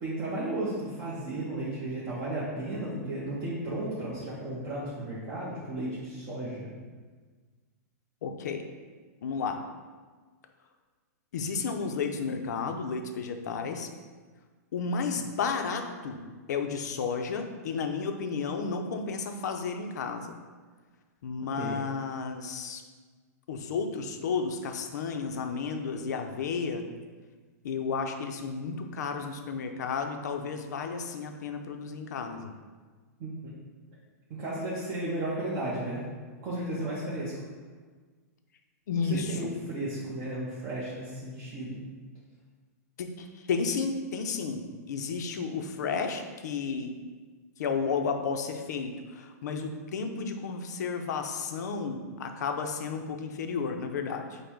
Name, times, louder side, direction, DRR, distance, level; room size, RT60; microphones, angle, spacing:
voice 1, 0.0-6.7 21.6-21.8 33.2-33.5 34.3-36.0 36.4-37.3 38.9-41.8, right 1 dB, 25° right, -8 dB, 0.7 m, -34 dB
voice 2, 8.2-8.7 9.2-9.6 11.3-13.9 14.7-16.2 16.5-20.3 21.2-22.8 23.5-26.9 27.6-32.5 38.9-39.3 43.0-46.9 47.6-54.4, left 5 dB, 80° left, 5 dB, 0.5 m, -32 dB
5.2 x 2.1 x 4.5 m, 1.4 s
supercardioid pair, 170°, 9 cm